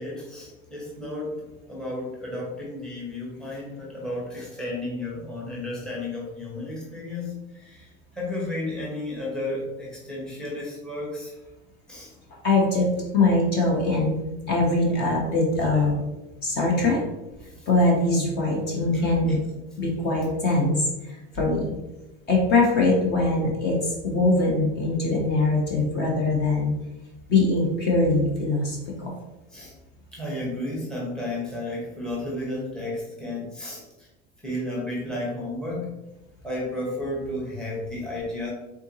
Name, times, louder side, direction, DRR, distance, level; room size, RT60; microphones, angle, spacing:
voice 1, 0.0-7.9 8.1-11.4 11.9-12.1 15.5-15.8 16.8-16.9 17.4-17.7 18.9-19.1 29.5-29.7 30.1-34.1 34.4-36.0 36.4-38.5, left 1 dB, ahead, -4 dB, 0.9 m, -33 dB
voice 2, 12.4-16.0 16.4-17.0 17.7-19.4 19.8-21.8 22.3-26.8 27.3-29.1, left 2 dB, 35° left, -1 dB, 0.9 m, -22 dB
4.4 x 3.7 x 2.7 m, 1.0 s
cardioid pair, 165°, 29 cm